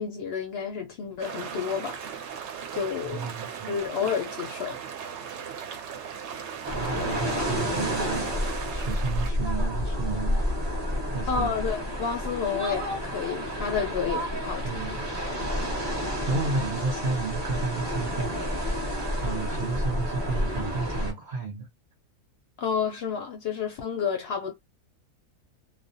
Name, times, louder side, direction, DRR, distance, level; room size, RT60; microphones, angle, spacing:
voice 1, 0.0-2.3 2.7-3.3 3.7-4.8 11.3-15.0 22.6-24.5, left 6 dB, 65° left, 0.6 m, -30 dB
sound 1, 1.2-9.3, right 7 dB, 65° right, 0.8 m, -38 dB
voice 2, 3.0-3.8 6.7-10.4 11.1-11.5 13.5-13.6 14.6-15.1 15.4-15.5 16.3-18.7 19.2-21.7, right 4 dB, 85° right, 0.4 m, -32 dB
sound 2, 6.6-21.1, equal, 25° right, 0.7 m, -30 dB
2.4 x 2.0 x 2.6 m
omnidirectional pair, 1.5 m